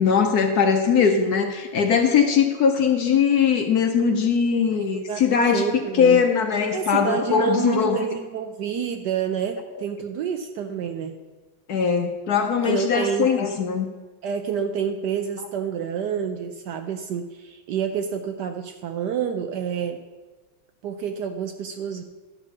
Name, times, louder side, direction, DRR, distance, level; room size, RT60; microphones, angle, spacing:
voice 1, 0.0-8.1 11.7-13.9, left 6 dB, 60° left, 5 dB, 1.1 m, -20 dB
voice 2, 4.8-5.2 5.5-6.2 6.7-11.2 12.6-13.3 14.2-20.0 20.8-22.0, right 7 dB, 70° right, 7 dB, 1.0 m, -28 dB
12.0 x 5.3 x 6.6 m, 1.3 s
omnidirectional pair, 2.2 m